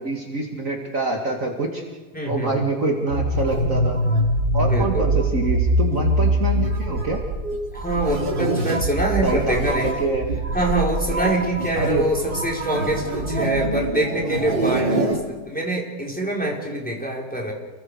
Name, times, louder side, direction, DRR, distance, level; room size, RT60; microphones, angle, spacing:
voice 1, 0.0-1.8 2.3-4.0 4.5-7.2 9.2-10.3 11.8-12.1, right 3 dB, 45° right, 1 dB, 2.6 m, -25 dB
voice 2, 2.1-2.6 4.6-5.2 7.7-9.9 10.5-17.5, right 1 dB, 5° left, -2 dB, 4.4 m, -25 dB
sound 1, 3.1-15.2, right 1 dB, 90° right, 3.6 m, -24 dB
29.5 x 22.0 x 5.0 m, 1.3 s
omnidirectional pair, 1.9 m